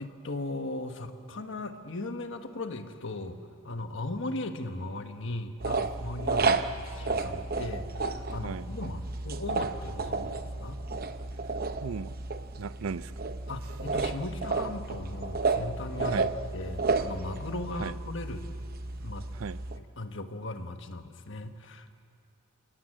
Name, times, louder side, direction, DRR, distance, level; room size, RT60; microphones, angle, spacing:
voice 1, 0.0-3.4 3.6-6.5 6.8-10.8 13.5-18.4 19.0-19.3 19.8-22.0, left 2 dB, 60° left, 7 dB, 1.4 m, -38 dB
sound 1, 5.6-19.8, right 3 dB, 45° right, 0.8 m, -32 dB
voice 2, 11.8-12.1 12.6-13.3 16.1-16.3 17.8-17.9 19.3-19.6, right 5 dB, 75° right, 16 dB, 0.5 m, -36 dB
28.5 x 18.0 x 7.7 m, 2.3 s
head